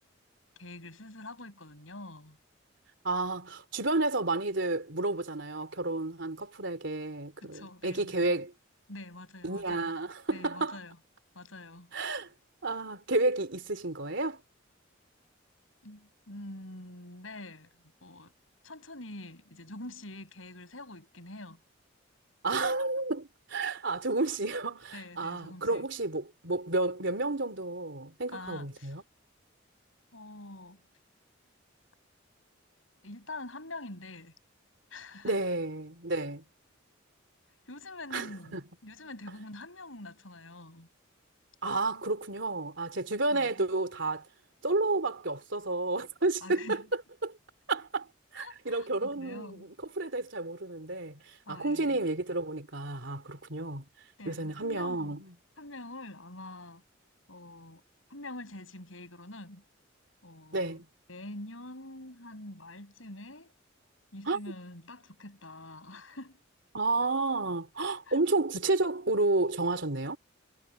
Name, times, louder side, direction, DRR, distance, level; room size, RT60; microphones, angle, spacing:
voice 1, 0.6-2.4 7.4-8.4 8.9-9.9 10.3-11.0 11.3-11.9 15.8-18.3 18.6-21.6 24.9-25.9 28.3-29.0 30.1-30.8 33.0-34.3 34.9-35.4 37.7-40.9 43.3-43.6 46.4-46.9 48.4-49.7 51.5-52.0 54.2-55.2 55.6-56.8 57.3-57.8 58.1-59.6 60.2-60.8 61.1-63.5 64.1-66.4 68.1-68.2, left 2 dB, 90° left, 7.6 m, -45 dB
voice 2, 3.0-8.5 9.4-10.8 11.9-12.3 12.6-14.4 22.4-29.0 35.2-36.4 38.1-38.3 38.5-38.6 41.6-44.2 44.6-46.8 47.2-47.3 47.7-48.1 48.3-49.6 50.0-51.2 51.5-53.8 54.3-55.3 60.5-60.9 64.3-64.4 66.7-70.2, right 2 dB, 65° right, 3.5 m, -31 dB
head